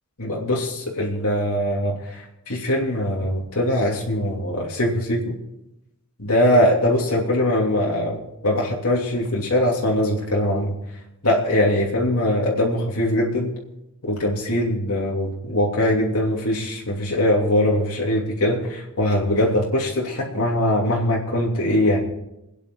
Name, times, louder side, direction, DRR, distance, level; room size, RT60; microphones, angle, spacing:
voice 1, 0.2-5.3 6.2-10.7 11.2-13.5 14.0-22.0, left 1 dB, 85° left, -2 dB, 2.9 m, -22 dB
27.5 x 9.8 x 3.9 m, 0.89 s
head